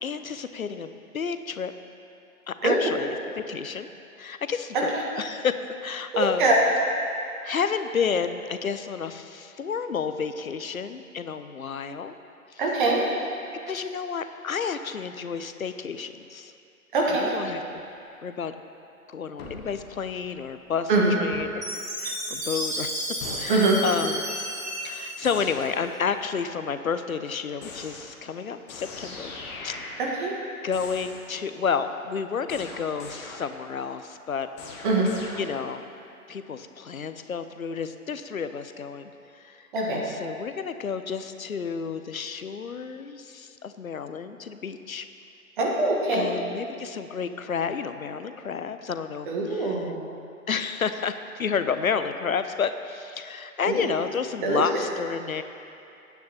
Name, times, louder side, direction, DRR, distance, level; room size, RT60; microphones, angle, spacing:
voice 1, 0.0-1.7 2.5-3.9 4.2-6.5 7.4-12.2 12.5-12.6 13.7-16.5 17.1-17.8 18.2-18.5 19.1-21.6 22.0-24.2 24.8-29.3 29.6-29.8 30.6-34.5 35.4-35.9 36.3-39.1 39.4-45.1 46.1-49.9 50.5-55.4, left 6 dB, 70° left, 10 dB, 0.8 m, -31 dB
voice 2, 6.1-6.6 12.6-13.1 16.9-17.4 20.9-21.1 23.5-23.8 30.0-30.3 34.8-35.1 39.7-40.0 45.6-46.3 49.3-50.0 53.7-53.9 54.4-54.6, right 2 dB, 35° right, -2 dB, 1.6 m, -23 dB
sound 1, 19.4-20.6 21.3-21.7 23.2-23.7 25.2-26.1 27.6-28.4 28.7-30.4 30.7-31.4 32.5-33.7 34.6-35.9, left 3 dB, 20° left, 1.1 m, -41 dB
Chime, 21.6-26.0, right 1 dB, 10° right, 1.9 m, -32 dB
21.0 x 9.4 x 3.0 m, 2.6 s
figure-of-eight pair, 125°, 43 cm